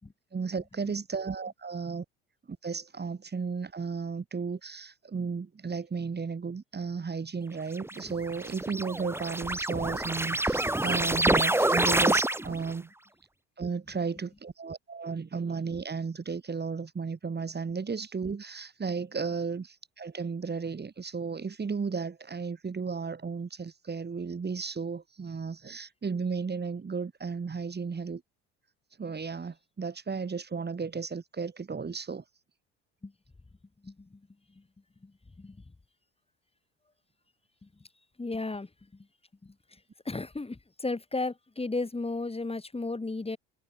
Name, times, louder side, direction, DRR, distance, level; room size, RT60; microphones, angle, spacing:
voice 1, 0.3-2.0 2.6-12.9 13.6-28.2 29.0-32.2, right 5 dB, 30° right, 6.8 m, -34 dB
sound 1, 7.8-12.7, right 1 dB, 5° right, 1.8 m, -27 dB
voice 2, 38.2-38.7 39.4-39.8 40.0-43.4, left 3 dB, 15° left, 6.9 m, -34 dB
hypercardioid pair, 70°, 35 cm